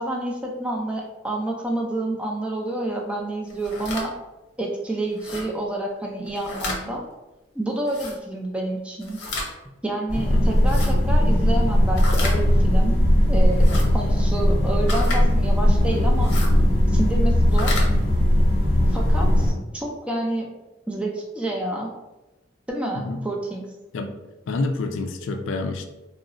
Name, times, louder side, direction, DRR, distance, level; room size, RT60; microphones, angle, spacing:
voice 1, 0.0-4.1 4.6-7.0 7.5-9.2 9.8-13.0 13.3-16.4 16.9-17.8 18.9-20.5 20.9-21.9 22.7-23.7, right 1 dB, 5° right, -1 dB, 0.4 m, -29 dB
sound 1, 3.5-4.1 5.2-5.5 6.3-6.8 7.9-8.1 9.0-9.5 10.6-10.9 12.0-12.4 13.5-13.9 14.9-15.2 16.2-16.5 17.4-17.9, left 2 dB, 60° left, 0.7 m, -31 dB
sound 2, 10.1-19.5, equal, 45° right, 0.8 m, -19 dB
voice 2, 24.5-25.8, left 3 dB, 90° left, 6 dB, 0.3 m, -27 dB
3.7 x 2.0 x 2.5 m, 1.0 s
head